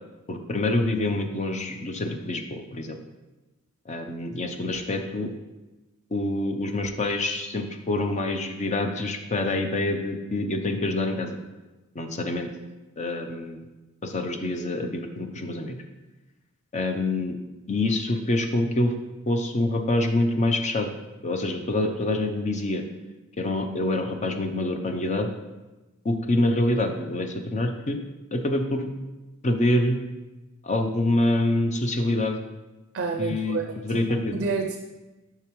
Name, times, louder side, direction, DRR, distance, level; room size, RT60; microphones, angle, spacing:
voice 1, 0.3-3.0 3.9-5.3 6.1-11.4 11.9-12.5 13.0-13.6 14.0-15.8 16.7-17.4 17.7-18.9 19.3-20.9 21.2-22.8 23.4-25.3 26.0-28.0 28.3-28.9 29.4-30.0 30.6-32.4 33.2-34.3, left 2 dB, 35° left, 6 dB, 0.5 m, -26 dB
voice 2, 32.9-34.0 34.3-34.8, right 4 dB, 55° right, 5 dB, 0.4 m, -29 dB
6.9 x 5.8 x 3.1 m, 1.1 s
head